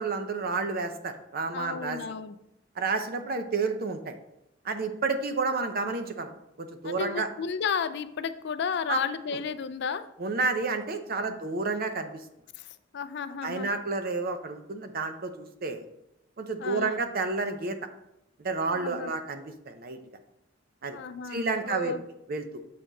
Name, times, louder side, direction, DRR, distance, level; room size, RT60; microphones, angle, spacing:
voice 1, 0.0-2.0 2.8-4.2 4.6-6.3 6.6-7.3 8.9-9.0 10.2-12.2 13.4-15.8 16.4-17.8 18.4-20.0 20.8-21.0 21.3-21.9 22.3-22.5, right 3 dB, 50° right, 7 dB, 0.7 m, -30 dB
voice 2, 1.5-2.4 6.8-10.1 11.2-11.4 12.5-13.7 16.6-17.0 18.7-19.1 20.9-22.0, left 6 dB, 60° left, 12 dB, 0.4 m, -33 dB
7.5 x 4.3 x 4.0 m, 0.86 s
head